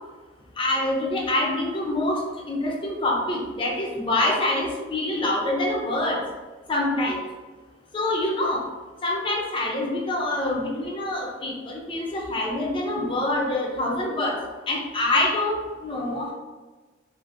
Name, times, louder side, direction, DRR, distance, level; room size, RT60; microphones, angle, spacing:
voice 1, 0.6-2.2 2.5-6.2 6.7-7.2 7.9-8.6 9.0-14.4 14.7-16.3, left 1 dB, 25° left, -2 dB, 0.4 m, -25 dB
2.6 x 2.5 x 2.5 m, 1.3 s
head